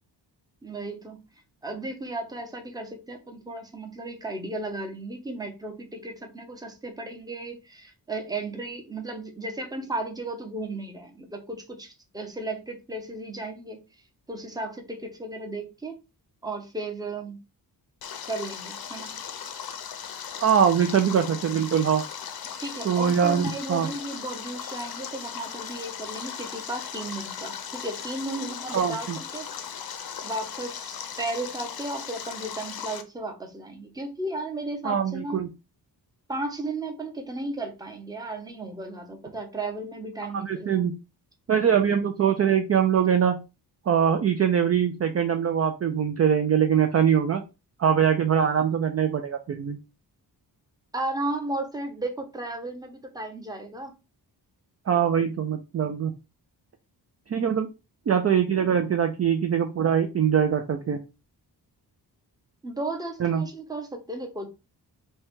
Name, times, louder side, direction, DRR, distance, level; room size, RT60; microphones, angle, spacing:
voice 1, 0.6-1.3 1.6-13.8 14.3-15.9 16.4-17.4 18.3-19.2 22.6-29.5 30.2-35.5 36.3-40.9 50.9-53.9 62.6-64.5, right 2 dB, 10° right, 0.7 m, -34 dB
Stream, 18.0-33.0, left 8 dB, 60° left, 0.7 m, -38 dB
voice 2, 20.4-22.0 22.8-23.9 28.7-29.2 34.8-35.5 40.3-40.9 41.5-43.4 43.9-47.4 47.8-49.8 54.9-56.1 57.3-57.7 58.1-61.0 63.2-63.4, right 8 dB, 40° right, 0.4 m, -23 dB
5.3 x 2.3 x 3.6 m
wide cardioid pair, 180°, 41 cm